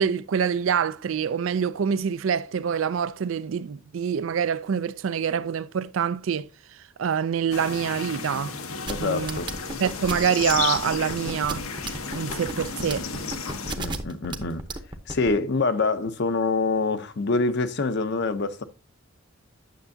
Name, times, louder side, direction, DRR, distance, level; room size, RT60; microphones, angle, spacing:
voice 1, 0.0-6.5 7.0-8.5 9.0-9.4 9.8-11.6 12.1-13.1, right 7 dB, 65° right, 0.4 m, -25 dB
sound 1, 7.5-13.8, left 5 dB, 90° left, 1.1 m, -33 dB
voice 2, 8.9-9.5 13.8-14.6 15.1-18.6, left 3 dB, 55° left, 0.7 m, -25 dB
sound 2, 8.9-15.3, right 2 dB, 20° right, 0.8 m, -33 dB
9.3 x 6.7 x 2.7 m
head